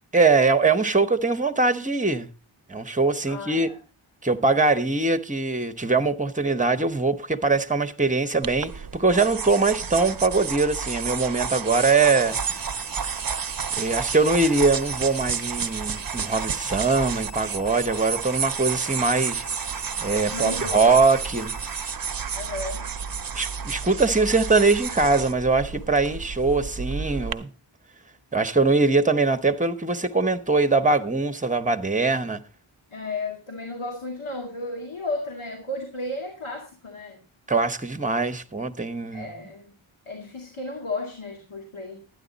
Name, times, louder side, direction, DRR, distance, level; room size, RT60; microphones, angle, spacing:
voice 1, 0.1-2.3 2.7-3.7 4.2-12.4 13.7-19.4 20.0-21.5 23.3-27.5 28.3-32.4 37.5-39.3, right 3 dB, 15° right, 0.9 m, -22 dB
voice 2, 3.3-3.8 20.3-20.9 22.3-22.9 32.9-37.2 39.1-39.7 40.1-42.1, left 2 dB, 75° left, 2.3 m, -34 dB
sound 1, 8.4-27.3, right 6 dB, 45° right, 0.7 m, -31 dB
sound 2, 12.3-21.9, left 3 dB, 15° left, 4.1 m, -48 dB
12.5 x 9.7 x 4.0 m
wide cardioid pair, 60°, 50 cm